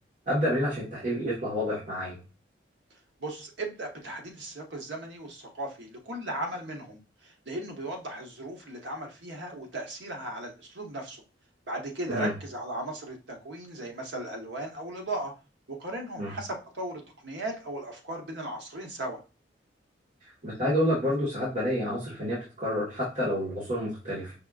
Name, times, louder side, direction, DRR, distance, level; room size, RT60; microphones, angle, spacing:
voice 1, 0.3-2.2 12.1-12.3 16.2-16.3 20.4-24.3, equal, 45° right, -8 dB, 1.3 m, -29 dB
voice 2, 3.2-11.2 11.7-15.3 15.7-19.2, right 1 dB, 70° right, 2 dB, 1.1 m, -37 dB
5.3 x 2.5 x 2.3 m, 0.32 s
head